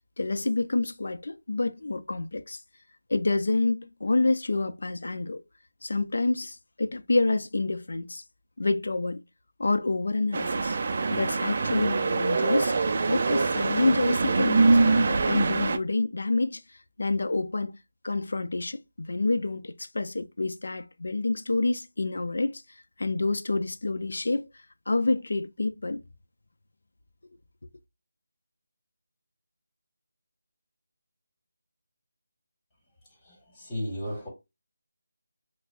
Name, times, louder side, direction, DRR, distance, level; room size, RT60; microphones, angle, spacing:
voice 1, 0.2-2.6 3.1-5.4 5.8-8.2 8.6-9.2 9.6-10.8 11.1-12.7 13.1-16.6 17.0-17.8 18.0-22.6 23.0-24.5 24.9-26.0 27.6-27.7, left 2 dB, 70° left, 0.5 m, -28 dB
sound 1, 10.3-15.8, right 3 dB, 40° right, 0.4 m, -24 dB
voice 2, 33.1-34.3, equal, 10° left, 1.7 m, -35 dB
5.9 x 2.1 x 2.4 m
figure-of-eight pair, 170°, 0 cm